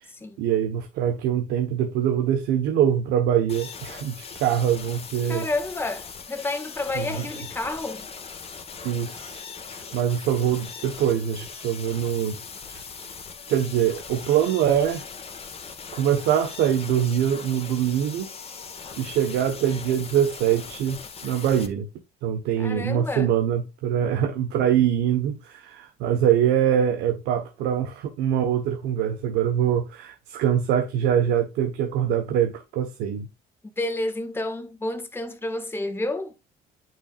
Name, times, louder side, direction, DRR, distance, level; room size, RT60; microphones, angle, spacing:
voice 1, 0.4-5.5 6.9-7.3 8.8-12.4 12.7-12.8 13.5-15.0 15.9-18.3 19.0-21.9 22.2-33.3, right 9 dB, 90° right, 1.3 m, -24 dB
sound 1, 3.5-21.7, left 5 dB, 35° left, 1.8 m, -40 dB
voice 2, 5.3-8.0 22.6-23.3 33.8-36.3, left 2 dB, 15° left, 1.9 m, -30 dB
9.3 x 5.7 x 2.5 m
cardioid pair, 110°, 17 cm